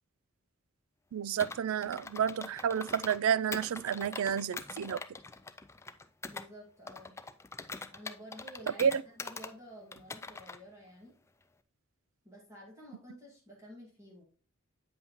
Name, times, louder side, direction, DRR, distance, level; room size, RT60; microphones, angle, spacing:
voice 1, 1.1-5.0 8.8-9.0, right 8 dB, 85° right, 0.4 m, -30 dB
Computer keyboard, 1.4-3.2 3.5-6.5 6.9-9.5 9.9-10.6, left 3 dB, 15° left, 0.4 m, -43 dB
voice 2, 6.3-7.2 7.9-8.8 9.2-11.1 12.2-14.3, equal, 15° right, 2.0 m, -51 dB
8.6 x 5.5 x 3.0 m
head